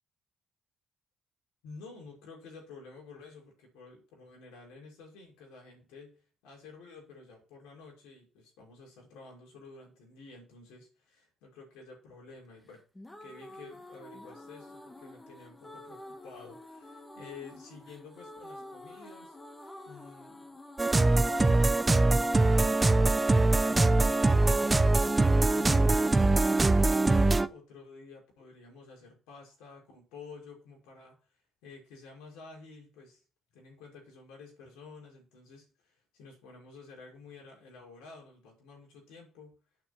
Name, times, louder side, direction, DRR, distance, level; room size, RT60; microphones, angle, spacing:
voice 1, 1.6-12.8 13.2-20.5 21.0-23.2 23.6-26.2 26.7-31.2 31.6-33.2 33.5-39.6, left 4 dB, 85° left, -1 dB, 5.7 m, -51 dB
sound 1, 12.7-23.7, left 1 dB, 20° left, 2.1 m, -49 dB
sound 2, 20.8-27.5, right 2 dB, 25° right, 0.9 m, -23 dB
8.8 x 7.1 x 8.0 m, 0.37 s
hypercardioid pair, 50°, 0 cm